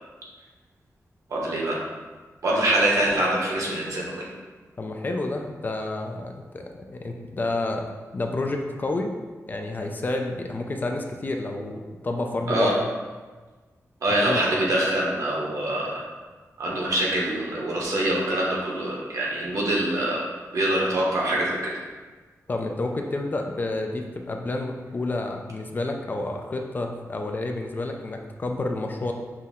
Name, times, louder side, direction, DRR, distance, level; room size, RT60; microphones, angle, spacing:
voice 1, 1.3-1.8 2.4-4.3 12.5-12.7 14.0-15.9 16.6-20.2 20.5-21.7, right 1 dB, 70° right, -3 dB, 1.1 m, -24 dB
voice 2, 4.8-9.2 9.5-12.7 14.2-14.4 22.5-29.1, left 2 dB, 35° left, 3 dB, 0.4 m, -29 dB
5.9 x 2.1 x 3.6 m, 1.3 s
wide cardioid pair, 130°, 6 cm